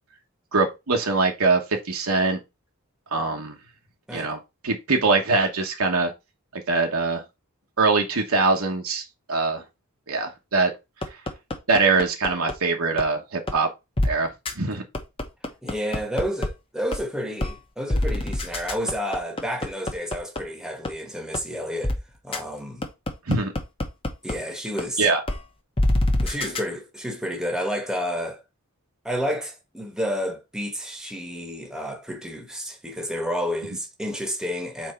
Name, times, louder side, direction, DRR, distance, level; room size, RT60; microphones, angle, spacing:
voice 1, 0.5-2.4 3.1-3.6 4.1-4.4 4.6-6.1 6.5-7.2 7.8-9.6 10.1-10.7 11.7-13.7 14.0-14.3 14.5-14.8 23.3-23.5 25.0-25.2 26.2-26.3, right 3 dB, 70° right, 1.2 m, -23 dB
sound 1, 11.0-12.5 13.0-13.1 13.5-13.6 14.0-14.1 14.5-14.6 14.9-16.5 16.9-17.0 17.4-17.5 17.9-20.4 20.9-21.0 21.3-21.4 21.8-22.0 22.3-22.4 22.8-24.3 24.8-24.9 25.3-25.4 25.8-26.6, left 1 dB, 25° left, 1.0 m, -24 dB
voice 2, 15.6-22.0 22.2-22.8 24.2-25.1 26.2-28.4 29.0-34.9, equal, 5° right, 1.1 m, -30 dB
4.5 x 4.2 x 5.4 m
head